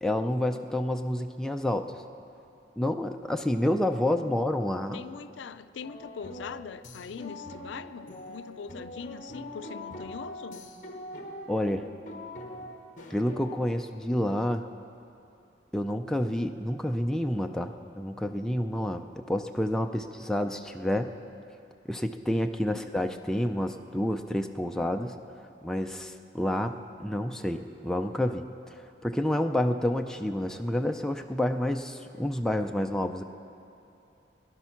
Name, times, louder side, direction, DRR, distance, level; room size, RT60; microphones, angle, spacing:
voice 1, 0.0-1.9 2.8-5.0 11.5-11.9 13.1-14.6 15.7-21.1 21.9-25.1 25.6-26.7 27.0-33.2, left 1 dB, 5° left, 4 dB, 0.4 m, -29 dB
voice 2, 4.9-10.6 22.6-22.9, left 6 dB, 90° left, 14 dB, 0.4 m, -42 dB
sound 1, 5.8-13.6, left 1 dB, 45° left, 1.2 m, -43 dB
18.0 x 11.0 x 5.8 m, 2.7 s
head